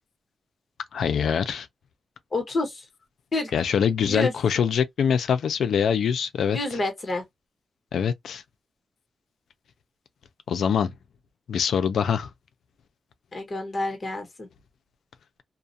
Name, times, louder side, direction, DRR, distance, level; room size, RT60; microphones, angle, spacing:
voice 1, 0.9-1.7 3.5-6.6 7.9-8.4 10.5-10.9 11.5-12.3, left 7 dB, 85° left, 0.4 m, -24 dB
voice 2, 2.3-2.8 3.3-3.5 4.1-4.3 6.5-7.2 13.3-14.5, left 2 dB, 35° left, 1.1 m, -28 dB
2.4 x 2.1 x 2.6 m
wide cardioid pair, 120°, 0 cm